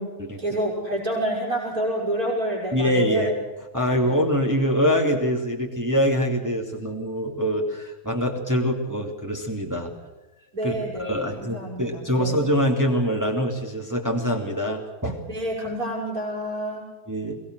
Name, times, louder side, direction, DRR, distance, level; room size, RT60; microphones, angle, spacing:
voice 1, 0.4-3.3 4.0-4.2 10.5-12.3 15.3-16.9, right 1 dB, 65° right, -6 dB, 5.9 m, -28 dB
voice 2, 2.7-3.3 3.7-9.9 10.6-15.2 17.1-17.4, equal, 10° right, 1 dB, 2.6 m, -24 dB
22.5 x 19.5 x 6.4 m, 1.2 s
omnidirectional pair, 1.7 m